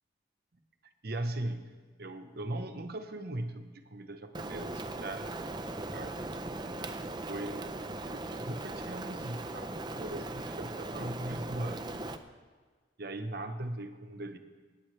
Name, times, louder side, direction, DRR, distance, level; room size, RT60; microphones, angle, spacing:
voice 1, 1.0-1.7 2.0-5.4 5.9-6.2 6.6-11.8 13.0-14.4, right 1 dB, 55° right, 7 dB, 1.0 m, -39 dB
Rain, 4.3-12.2, right 2 dB, 25° right, 0.6 m, -39 dB
25.0 x 10.0 x 3.3 m, 1.5 s
head